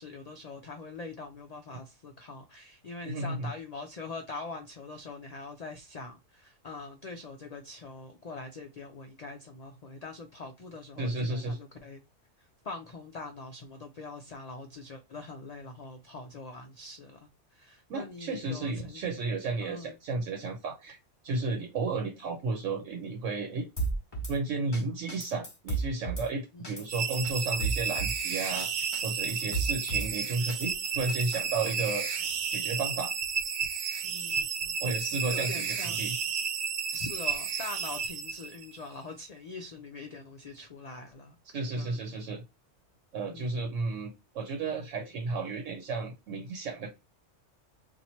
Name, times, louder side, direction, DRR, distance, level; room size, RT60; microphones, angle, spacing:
voice 1, 0.0-12.0 12.4-19.0 19.6-20.0 26.5-26.7 29.4-29.7 34.0-34.7 35.2-36.1 36.9-42.4 43.3-43.5, left 3 dB, 70° left, 0.3 m, -43 dB
voice 2, 3.0-3.5 11.0-11.6 17.9-21.0 21.2-23.7 24.3-32.1 32.5-33.1 34.8-36.1 41.5-42.4 43.1-46.9, right 3 dB, 80° right, 1.0 m, -33 dB
Drum kit / Snare drum, 23.8-24.3 24.7-24.8 25.1-26.3 26.6-26.9 27.1-28.2 28.6-28.7 28.9-30.1 30.5-31.4, right 3 dB, 20° left, 0.9 m, -33 dB
sound 1, 26.9-38.8, right 6 dB, 55° right, 0.6 m, -32 dB
2.8 x 2.5 x 4.2 m
omnidirectional pair, 1.3 m